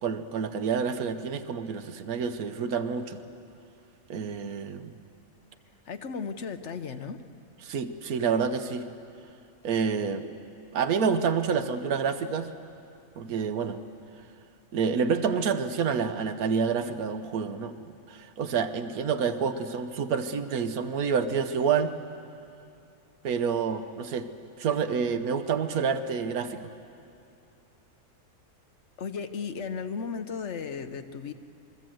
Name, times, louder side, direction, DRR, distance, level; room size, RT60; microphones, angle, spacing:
voice 1, 0.0-3.2 4.1-4.9 7.6-8.8 9.6-10.2 10.7-12.5 13.2-13.8 14.7-17.7 18.1-21.9 23.2-24.3 24.6-26.7, right 6 dB, 90° right, 10 dB, 1.4 m, -28 dB
voice 2, 5.9-7.2 29.0-31.3, left 5 dB, 55° left, 8 dB, 1.1 m, -35 dB
27.5 x 22.0 x 7.8 m, 2.6 s
omnidirectional pair, 1.5 m